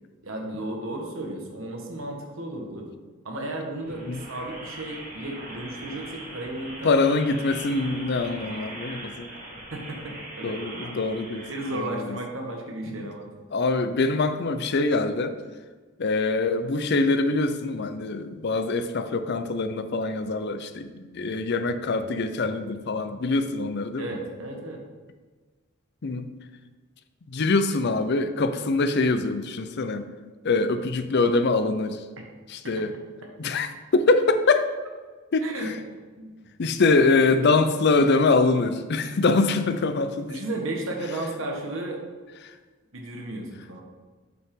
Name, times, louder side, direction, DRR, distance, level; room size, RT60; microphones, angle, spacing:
voice 1, 0.2-2.9 3.2-7.0 9.7-10.5 11.5-13.3 24.0-24.8 32.8-32.9 35.4-35.7 36.2-36.3 40.3-42.0 42.9-43.8, right 2 dB, 70° right, 1 dB, 1.3 m, -34 dB
sound 1, 3.8-11.7, right 1 dB, 40° right, 1.9 m, -41 dB
voice 2, 6.8-9.3 10.4-11.5 11.7-12.2 12.9-13.1 13.5-15.4 16.0-24.1 26.0-26.3 27.3-30.0 30.4-32.0 32.5-32.9 33.4-34.7 35.3-35.7 36.6-40.3, left 3 dB, 55° left, 10 dB, 0.5 m, -24 dB
7.9 x 5.5 x 3.7 m, 1.4 s
head